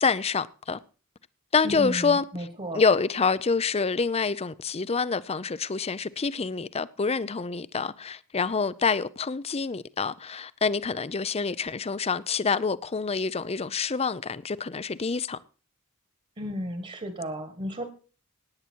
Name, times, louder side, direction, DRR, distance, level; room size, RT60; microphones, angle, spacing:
voice 1, 0.0-0.8 1.5-2.2 2.7-15.4, left 5 dB, 30° left, 0.6 m, -27 dB
voice 2, 1.6-2.8 16.4-17.8, equal, 30° right, 1.7 m, -33 dB
17.0 x 9.8 x 4.6 m
head